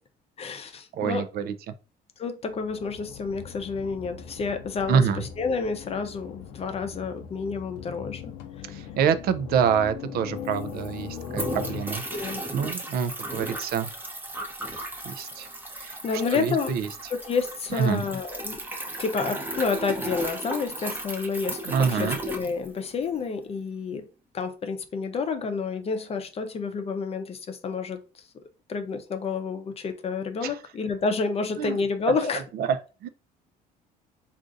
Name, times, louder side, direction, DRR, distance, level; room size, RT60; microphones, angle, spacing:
voice 1, 0.4-1.3 2.2-8.3 12.1-12.5 16.0-16.7 17.1-18.6 19.0-24.1 24.3-28.0 28.7-32.4, left 5 dB, 35° left, 0.6 m, -29 dB
voice 2, 0.9-1.5 4.9-5.3 8.7-13.9 15.0-15.5 15.8-17.1 17.7-18.0 21.6-22.2 30.4-30.6 31.6-31.8 32.5-32.8 33.0-33.1, right 7 dB, 65° right, 0.4 m, -26 dB
sound 1, 2.5-11.8, left 7 dB, 85° left, 0.5 m, -40 dB
sound 2, 10.1-10.2 10.4-23.2, right 1 dB, 10° right, 0.6 m, -35 dB
3.8 x 2.5 x 2.5 m
cardioid pair, 110°, 17 cm